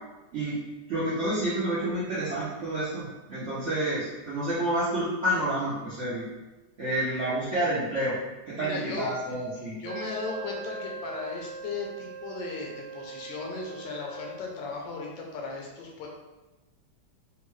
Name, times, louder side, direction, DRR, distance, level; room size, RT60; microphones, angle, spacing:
voice 1, 0.9-6.2 6.8-8.2 8.5-9.8, right 1 dB, 65° right, -9 dB, 0.7 m, -29 dB
voice 2, 8.6-9.4 9.8-16.1, left 3 dB, 75° left, -1 dB, 1.3 m, -36 dB
Wind instrument woodwind instrument, 9.8-14.6, right 3 dB, 90° right, 1.4 m, -41 dB
3.6 x 2.2 x 3.1 m, 1.1 s
omnidirectional pair, 2.1 m